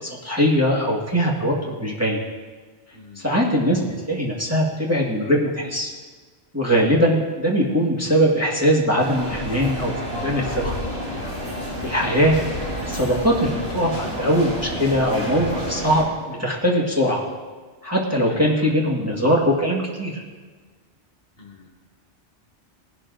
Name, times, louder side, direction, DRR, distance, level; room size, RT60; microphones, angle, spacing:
voice 1, 0.0-2.2 3.1-5.9 6.5-9.9 10.2-10.7 11.8-12.4 12.8-17.2 17.8-20.2, equal, 15° right, -4 dB, 1.7 m, -21 dB
voice 2, 2.9-3.3 18.3-18.7 21.4-21.7, left 4 dB, 60° left, -2 dB, 2.1 m, -44 dB
sound 1, 9.0-16.0, left 1 dB, 55° right, 3.8 m, -30 dB
18.5 x 12.0 x 2.6 m, 1.4 s
omnidirectional pair, 1.2 m